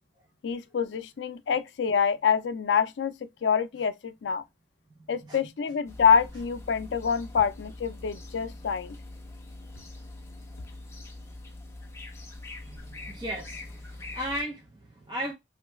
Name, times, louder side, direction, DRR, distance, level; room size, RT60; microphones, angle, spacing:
voice 1, 0.4-4.4 5.1-9.0, left 6 dB, 80° left, 0.4 m, -26 dB
voice 2, 5.0-5.4 12.6-15.3, equal, 25° right, 0.7 m, -36 dB
sound 1, 5.9-14.4, left 2 dB, 15° left, 0.6 m, -43 dB
3.1 x 2.3 x 3.0 m
head